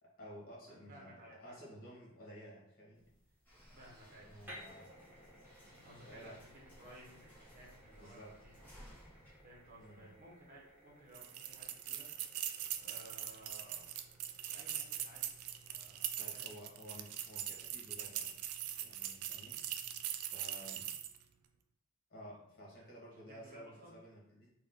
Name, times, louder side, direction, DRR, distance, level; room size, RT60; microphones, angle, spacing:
voice 1, 0.0-3.0 4.2-5.0 6.1-6.4 7.9-8.3 9.8-10.1 16.2-18.3 18.8-19.6 20.2-20.9 22.1-24.5, equal, 45° left, -4 dB, 1.4 m, -53 dB
voice 2, 0.7-1.6 3.8-4.8 5.7-6.5 6.8-8.6 9.4-13.9 14.5-15.3 15.6-16.5 20.5-20.7 22.8-22.9 23.3-23.9, right 1 dB, 40° right, -3 dB, 1.2 m, -58 dB
sound 1, 2.9-19.9, equal, 10° right, 1.1 m, -61 dB
sound 2, 3.4-10.4, equal, 10° left, 1.3 m, -60 dB
sound 3, 11.1-21.2, right 11 dB, 80° right, 0.3 m, -42 dB
3.7 x 2.6 x 3.8 m, 0.79 s
head